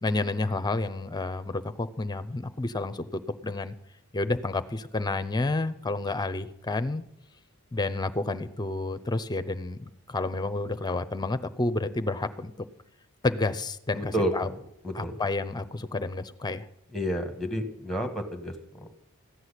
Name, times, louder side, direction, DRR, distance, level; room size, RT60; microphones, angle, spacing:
voice 1, 0.0-3.7 4.1-7.0 7.7-12.7 13.2-14.5 14.9-16.7, left 2 dB, 20° left, 11 dB, 0.6 m, -30 dB
voice 2, 13.9-14.5 14.8-15.2 16.9-18.9, equal, ahead, 5 dB, 1.5 m, -30 dB
15.0 x 6.2 x 9.9 m, 0.80 s
head